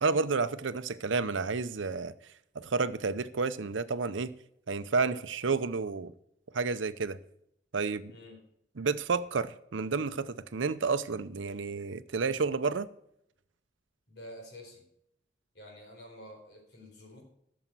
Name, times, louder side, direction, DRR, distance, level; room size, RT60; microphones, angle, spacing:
voice 1, 0.0-2.1 2.5-4.3 4.7-6.1 6.5-7.2 7.7-8.1 8.8-12.9, right 4 dB, 85° right, 0.7 m, -30 dB
voice 2, 14.1-14.9 15.5-17.2, left 1 dB, 60° left, 4.1 m, -49 dB
13.0 x 7.1 x 6.1 m
head